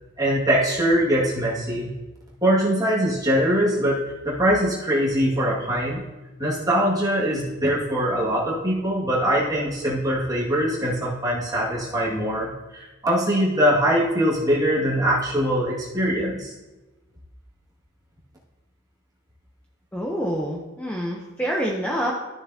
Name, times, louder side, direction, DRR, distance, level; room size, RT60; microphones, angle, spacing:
voice 1, 0.2-1.9 2.4-4.0 4.2-6.0 6.4-16.5, equal, 20° right, -6 dB, 1.9 m, -22 dB
voice 2, 19.9-22.1, equal, 5° left, -2 dB, 0.7 m, -27 dB
13.0 x 6.6 x 2.8 m, 1.1 s
head